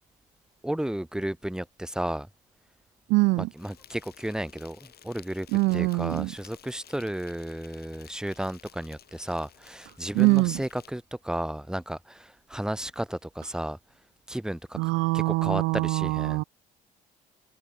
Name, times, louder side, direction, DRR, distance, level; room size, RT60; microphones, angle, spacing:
voice 1, 0.6-2.3 3.6-5.5 5.7-13.8 14.3-14.8 15.1-16.4, right 1 dB, 5° right, 1.5 m, -33 dB
voice 2, 3.1-3.5 5.5-6.3 10.1-10.6 14.7-16.4, right 24 dB, 80° right, 0.5 m, -23 dB
Insect, 3.6-10.9, left 10 dB, 55° left, 6.9 m, -54 dB
supercardioid pair, 70°, 19 cm